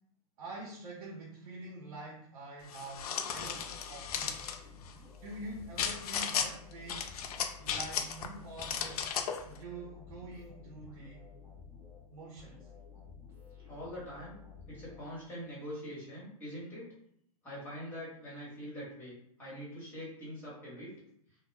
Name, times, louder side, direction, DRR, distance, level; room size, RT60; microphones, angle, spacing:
voice 1, 0.4-4.4 5.2-7.1 7.6-9.1 9.4-11.2 12.1-12.7, right 2 dB, 60° right, -3 dB, 0.7 m, -46 dB
sound 1, 2.7-4.6 5.8-6.5 6.9-8.3 8.6-9.4, left 7 dB, 80° left, 0.4 m, -35 dB
sound 2, 3.3-15.5, left 5 dB, 15° right, 0.8 m, -53 dB
voice 2, 13.7-14.4 14.7-16.9 17.4-20.9, equal, 10° left, -7 dB, 1.1 m, -43 dB
2.2 x 2.0 x 3.2 m, 0.70 s
hypercardioid pair, 155°, 19 cm